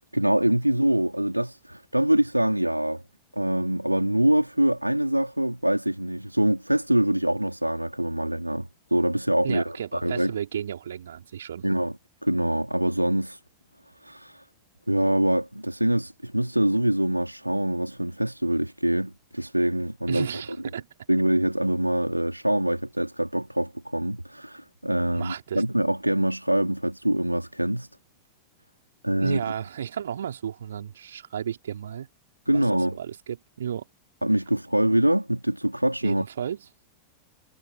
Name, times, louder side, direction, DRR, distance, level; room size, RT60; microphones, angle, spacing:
voice 1, 0.1-3.0 3.3-10.3 11.6-11.9 12.2-13.4 14.0-14.4 14.9-20.3 21.1-27.9 29.0-29.4 32.5-33.0 34.2-36.3, right 1 dB, 90° right, 3.2 m, -24 dB
voice 2, 9.4-11.6 20.1-20.9 25.1-25.6 29.2-32.1 32.5-32.6 32.9-33.9 36.0-36.7, right 9 dB, 65° right, 4.0 m, -33 dB
figure-of-eight pair, 90°, 0 cm